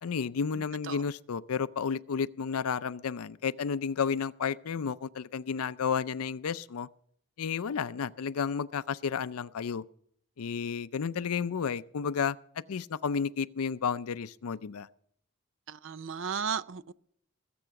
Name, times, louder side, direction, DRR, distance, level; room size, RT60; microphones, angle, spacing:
voice 1, 0.0-6.9 7.4-9.8 10.4-12.4 12.7-14.9, left 6 dB, 85° left, 0.5 m, -32 dB
voice 2, 15.7-16.9, right 6 dB, 60° right, 0.5 m, -34 dB
20.0 x 7.8 x 5.9 m
head